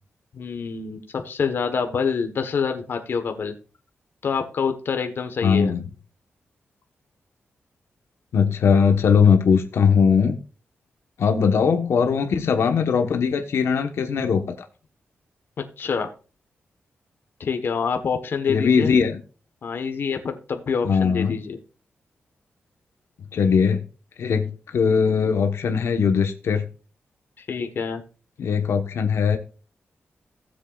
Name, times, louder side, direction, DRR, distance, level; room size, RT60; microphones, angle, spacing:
voice 1, 0.3-3.5 4.2-5.7 15.6-16.1 17.4-18.9 19.6-21.6 27.5-28.0, left 6 dB, 55° left, 6 dB, 1.2 m, -26 dB
voice 2, 5.4-5.8 8.3-10.4 11.2-14.5 18.5-19.2 20.8-21.3 23.3-23.8 24.2-26.7 28.4-29.4, left 6 dB, 80° left, 5 dB, 1.2 m, -20 dB
17.0 x 7.5 x 2.4 m, 0.35 s
wide cardioid pair, 170°, 4 cm